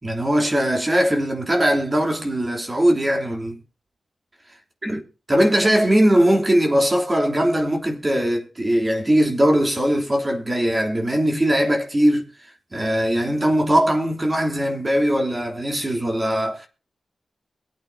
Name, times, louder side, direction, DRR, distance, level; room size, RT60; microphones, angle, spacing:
voice 1, 0.0-3.6 4.8-5.0 5.3-12.3 12.7-16.7, equal, 25° right, 3.0 m, -20 dB
24.0 x 8.6 x 2.7 m
wide cardioid pair, 85°, 0 cm